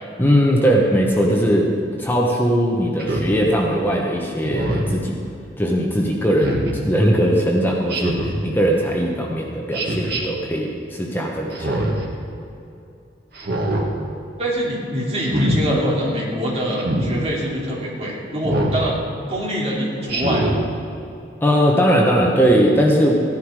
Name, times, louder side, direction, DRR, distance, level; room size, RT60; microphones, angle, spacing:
voice 1, 0.2-1.7 2.0-5.2 5.6-11.9 21.4-23.1, equal, 10° left, -1 dB, 1.1 m, -19 dB
Speech synthesizer, 3.0-3.3 4.4-4.9 6.4-6.7 7.9-8.4 9.7-10.2 11.5-12.0 13.3-13.9 15.2-15.6 16.8-17.1 18.4-18.8 20.1-20.6, right 1 dB, 65° right, 2.0 m, -23 dB
voice 2, 14.4-19.0 19.3-20.6, equal, 35° right, -4 dB, 2.8 m, -24 dB
15.5 x 11.0 x 4.8 m, 2.6 s
head